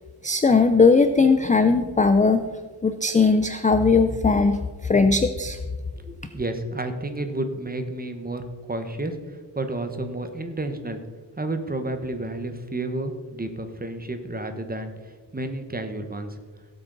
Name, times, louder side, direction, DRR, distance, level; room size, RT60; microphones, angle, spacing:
voice 1, 0.2-2.5 2.8-5.6, left 4 dB, 20° left, 9 dB, 0.4 m, -19 dB
voice 2, 6.0-8.4 8.7-9.1 9.5-11.0 11.4-14.9 15.3-16.3, right 2 dB, 20° right, 7 dB, 1.1 m, -31 dB
17.5 x 8.0 x 4.0 m, 1.4 s
wide cardioid pair, 130°, 46 cm